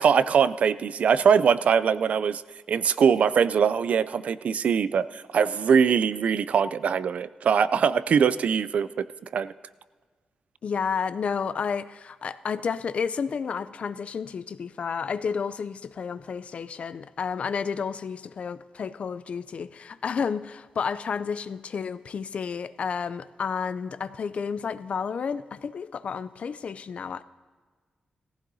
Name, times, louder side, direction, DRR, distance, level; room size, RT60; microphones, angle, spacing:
voice 1, 0.0-2.4 2.7-9.1 9.3-9.5, right 7 dB, 65° right, 0.3 m, -22 dB
voice 2, 10.6-27.2, left 6 dB, 55° left, 0.4 m, -31 dB
17.5 x 15.5 x 2.7 m
cardioid pair, 95°, 2 cm